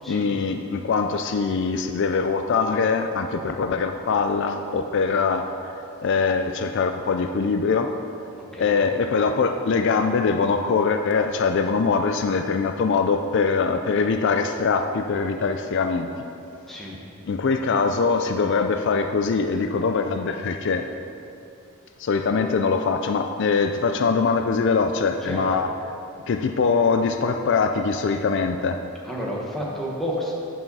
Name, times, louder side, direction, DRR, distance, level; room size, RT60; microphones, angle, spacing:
voice 1, 0.1-5.5 6.0-7.9 8.6-16.1 17.3-20.9 22.0-25.7 26.3-28.8, left 4 dB, 55° left, 6 dB, 0.4 m, -22 dB
voice 2, 8.4-8.8 16.7-17.0 25.2-25.4 29.0-30.3, equal, ahead, -4 dB, 1.3 m, -30 dB
9.4 x 5.7 x 5.5 m, 2.7 s
head